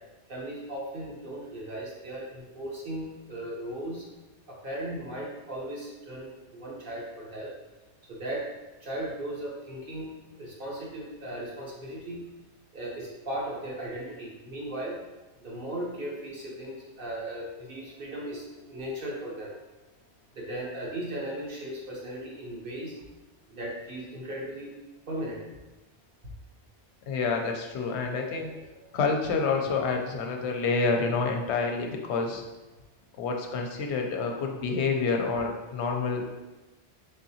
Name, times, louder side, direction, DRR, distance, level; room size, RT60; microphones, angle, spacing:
voice 1, 0.3-4.0 4.5-7.5 8.1-8.4 8.8-10.1 10.3-12.2 12.7-15.0 15.4-19.5 20.3-22.9 23.5-24.7 25.1-25.4 28.0-28.3 28.9-29.0, right 1 dB, 55° right, -4 dB, 1.1 m, -37 dB
voice 2, 27.1-32.4 33.1-36.3, left 4 dB, 75° left, 3 dB, 0.8 m, -28 dB
3.6 x 3.6 x 2.7 m, 1.1 s
omnidirectional pair, 1.1 m